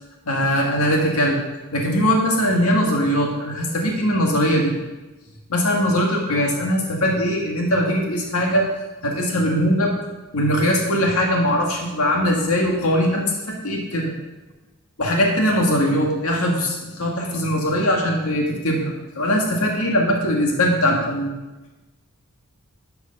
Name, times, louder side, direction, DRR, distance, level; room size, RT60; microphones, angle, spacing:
voice 1, 0.3-1.4 1.7-4.7 5.5-8.7 9.0-10.0 10.3-13.3 13.6-14.1 15.0-21.3, equal, 90° left, 0 dB, 1.9 m, -20 dB
12.5 x 8.2 x 5.4 m, 1.1 s
head